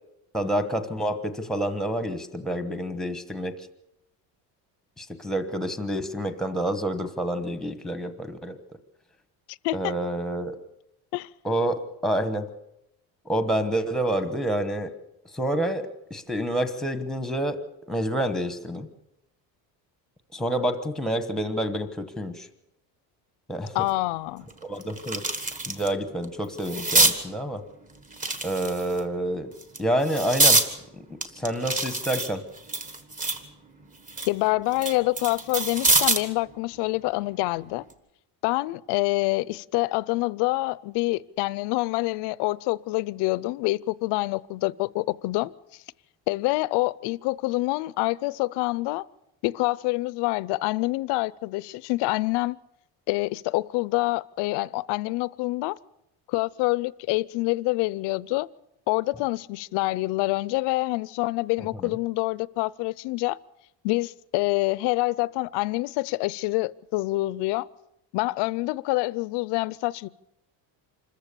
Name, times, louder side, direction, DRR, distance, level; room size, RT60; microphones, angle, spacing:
voice 1, 0.3-3.7 5.0-8.6 9.7-10.6 11.4-12.5 13.2-14.9 15.3-17.6 17.9-18.9 20.3-22.5 23.5-23.8 24.6-25.2 25.7-27.6 28.4-29.5 29.8-30.7 30.9-32.4 61.8-62.0, right 1 dB, ahead, 1.1 m, -28 dB
voice 2, 23.7-24.5 34.3-37.8 38.4-45.5 46.3-49.1 49.4-52.6 53.1-55.8 56.3-58.5 58.9-63.4 63.8-67.7 68.1-70.1, left 21 dB, 75° left, 0.6 m, -26 dB
sound 1, 23.9-24.0 24.5-25.9 26.2-27.2 28.1-29.0 29.6-30.7 31.2-33.5 33.9-36.3 37.7-37.9, right 2 dB, 20° right, 1.4 m, -25 dB
26.0 x 14.5 x 6.9 m
cardioid pair, 170°, 41 cm